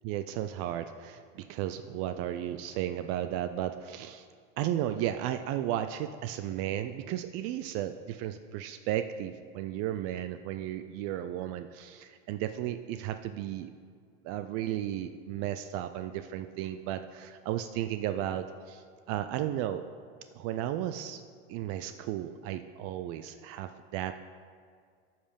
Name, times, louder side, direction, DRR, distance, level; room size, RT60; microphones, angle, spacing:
voice 1, 0.0-4.3 4.6-13.7 14.2-19.8 20.3-21.2 21.5-24.2, right 11 dB, 50° right, 10 dB, 0.4 m, -34 dB
9.7 x 5.6 x 5.2 m, 2.1 s
supercardioid pair, 110°, 31 cm